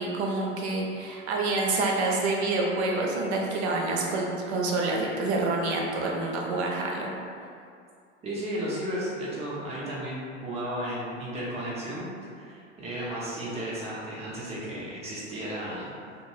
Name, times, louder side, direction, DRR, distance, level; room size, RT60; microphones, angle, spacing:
voice 1, 0.0-7.1, right 2 dB, 60° right, -1 dB, 0.6 m, -27 dB
voice 2, 8.2-12.1 12.3-15.9, right 1 dB, 15° right, -7 dB, 0.7 m, -34 dB
2.5 x 2.0 x 3.0 m, 2.3 s
figure-of-eight pair, 90°, 38 cm